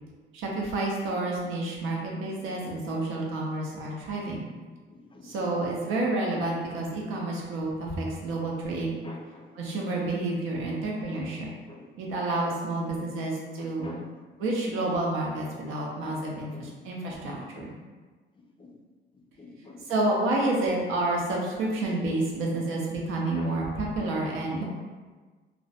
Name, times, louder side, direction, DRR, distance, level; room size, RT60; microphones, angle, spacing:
voice 1, 0.3-4.5 5.2-9.0 9.5-11.5 12.0-13.9 14.4-17.7 19.9-24.6, right 2 dB, 85° right, -2 dB, 0.6 m, -29 dB
voice 2, 4.9-5.3 9.0-9.5 11.1-11.3 11.7-11.9 13.6-14.1 16.0-16.7 17.3-17.7 18.6-18.7 19.4-19.8 23.3-23.5, left 2 dB, 25° left, 1 dB, 0.3 m, -46 dB
2.2 x 2.1 x 2.7 m, 1.4 s
cardioid pair, 90°, 20 cm